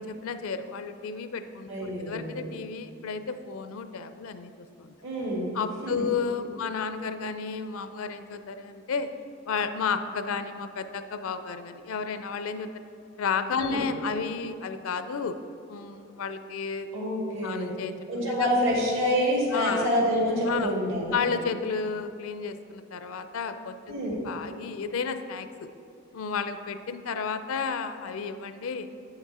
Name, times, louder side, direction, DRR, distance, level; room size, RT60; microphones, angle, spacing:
voice 1, 0.0-1.7 2.0-4.5 4.8-4.9 5.5-9.1 9.5-12.7 13.2-15.4 15.7-16.9 17.4-18.0 18.4-18.5 19.5-19.9 20.5-20.7 21.1-23.9 24.2-25.7 26.1-28.9, left 5 dB, 70° left, 10 dB, 0.4 m, -32 dB
voice 2, 1.7-2.4 5.0-6.1 13.6-13.8 16.9-17.7 18.1-21.2 23.9-24.2, equal, 65° right, -2 dB, 1.8 m, -27 dB
8.5 x 5.9 x 4.2 m, 2.6 s
head